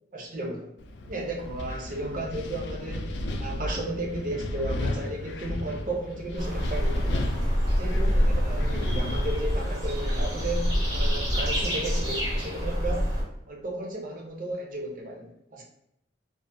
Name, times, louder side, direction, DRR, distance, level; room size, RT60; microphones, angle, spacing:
voice 1, 0.1-0.7 1.1-7.3 7.8-13.1 13.5-15.6, right 1 dB, 45° right, 0 dB, 0.5 m, -34 dB
Wind, 0.8-12.3, left 1 dB, 65° left, 0.3 m, -35 dB
sound 1, 6.4-13.2, equal, 75° right, 1.2 m, -26 dB
2.4 x 2.4 x 2.5 m, 0.81 s
head